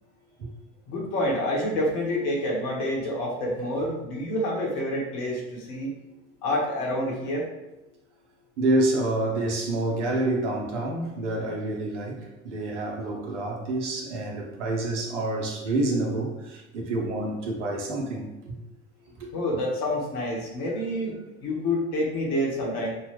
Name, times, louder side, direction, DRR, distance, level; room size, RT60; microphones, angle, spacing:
voice 1, 0.9-5.9 6.4-7.5 19.3-22.9, left 1 dB, 70° left, 1.4 m, -28 dB
voice 2, 8.6-18.6 19.2-19.3, right 2 dB, 85° right, 0.9 m, -28 dB
5.4 x 2.3 x 3.0 m
hypercardioid pair, 65°, 35 cm